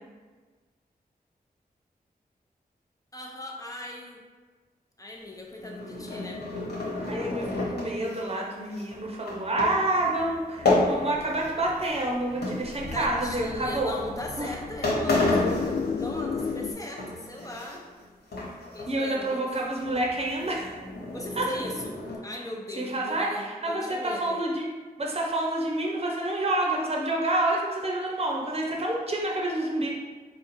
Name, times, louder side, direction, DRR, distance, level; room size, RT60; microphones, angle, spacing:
voice 1, 3.1-4.2 5.0-6.4 12.9-15.7 16.0-17.9 18.7-19.4 21.1-22.0 22.2-24.4, left 1 dB, 20° left, 0 dB, 0.8 m, -38 dB
sound 1, 5.4-11.5 11.8-13.3 14.0-14.2 14.6-14.7 14.8-16.5 16.8-18.0 18.3-18.9 19.2-19.3 19.7-22.2, left 2 dB, 90° left, 1.1 m, -31 dB
voice 2, 7.1-13.9 14.4-14.5 18.9-20.8 21.4-21.5 22.8-24.6 25.0-30.0, right 1 dB, 40° right, -2 dB, 0.8 m, -28 dB
sound 2, 10.6-16.7, left 5 dB, 55° left, 0.4 m, -34 dB
4.2 x 2.3 x 4.2 m, 1.4 s
cardioid pair, 65°, 16 cm